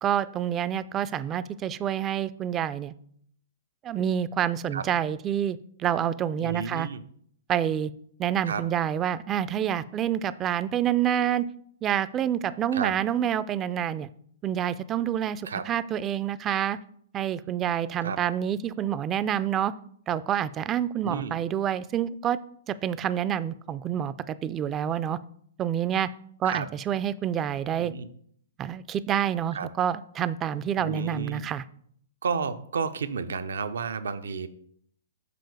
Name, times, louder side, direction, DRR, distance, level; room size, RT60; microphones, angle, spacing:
voice 1, 0.0-2.9 3.8-6.9 7.5-7.9 8.2-11.5 11.8-14.1 14.4-16.8 17.1-19.7 20.1-22.4 22.7-25.2 25.6-26.1 26.4-27.9 28.6-31.6, right 10 dB, 25° right, 16 dB, 0.3 m, -27 dB
voice 2, 6.4-7.0 8.5-8.6 12.7-12.9 15.4-15.6 18.0-18.2 21.0-21.3 26.4-26.7 27.8-28.1 29.5-29.7 30.8-31.4 32.2-34.5, right 5 dB, 75° right, 12 dB, 0.5 m, -31 dB
6.7 x 3.8 x 4.8 m, 0.64 s
hypercardioid pair, 120°, 0 cm